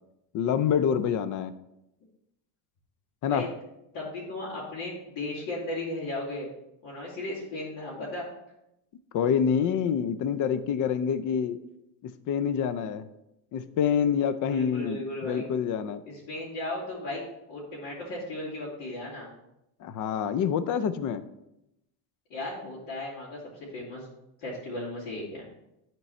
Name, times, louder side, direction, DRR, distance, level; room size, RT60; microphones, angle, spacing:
voice 1, 0.3-1.5 3.2-3.5 9.1-11.6 12.0-13.1 13.5-16.0 19.8-21.2, left 8 dB, 45° left, 13 dB, 0.6 m, -27 dB
voice 2, 3.9-6.5 6.8-8.3 14.4-15.5 16.1-19.3 22.3-23.4 23.7-24.1 24.4-25.5, left 1 dB, 75° left, -9 dB, 3.1 m, -35 dB
11.0 x 4.6 x 4.3 m, 0.86 s
cardioid pair, 135°, 44 cm